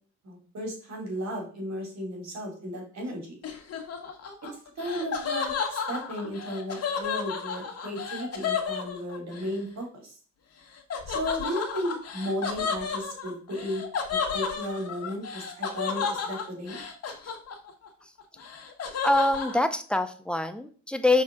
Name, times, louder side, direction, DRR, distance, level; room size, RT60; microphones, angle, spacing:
voice 1, 0.2-3.4 4.8-10.1 11.1-13.8 14.1-16.8, equal, 60° right, 1 dB, 3.0 m, -34 dB
Laughter, 3.4-9.5 10.9-17.9 18.2-19.6, left 6 dB, 55° left, 1.3 m, -32 dB
voice 2, 19.0-21.2, left 2 dB, 5° left, 9 dB, 0.7 m, -24 dB
5.8 x 4.4 x 3.7 m, 0.41 s
cardioid pair, 90°, 30 cm